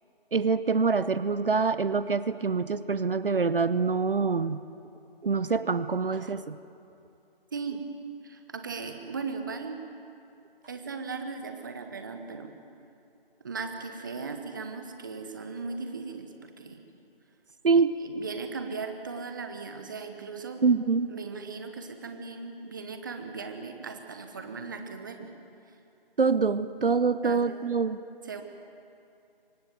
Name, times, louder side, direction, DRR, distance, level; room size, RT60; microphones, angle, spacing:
voice 1, 0.3-4.6 5.2-6.6 17.6-17.9 20.6-21.1 26.2-28.0, right 4 dB, 65° right, 14 dB, 0.8 m, -25 dB
voice 2, 7.5-7.8 8.2-9.8 10.7-12.5 13.4-16.8 18.0-20.6 21.1-25.3 27.2-27.4 28.3-28.4, right 4 dB, 20° right, 6 dB, 1.1 m, -37 dB
24.5 x 18.0 x 7.7 m, 2.6 s
figure-of-eight pair, 160°, 29 cm